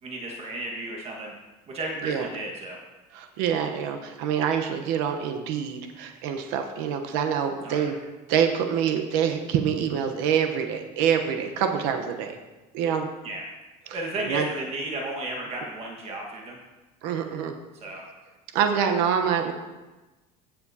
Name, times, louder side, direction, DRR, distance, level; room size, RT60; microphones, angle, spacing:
voice 1, 0.0-1.3 1.7-2.8 7.6-7.9 13.2-13.4 13.9-16.6 17.8-18.0, right 2 dB, 40° right, -1 dB, 1.5 m, -33 dB
voice 2, 3.1-7.9 8.3-12.4 12.7-13.1 13.9-14.5 17.0-17.5 18.5-19.5, right 8 dB, 80° right, 5 dB, 0.9 m, -26 dB
16.0 x 6.9 x 2.8 m, 1.2 s
cardioid pair, 125°, 16 cm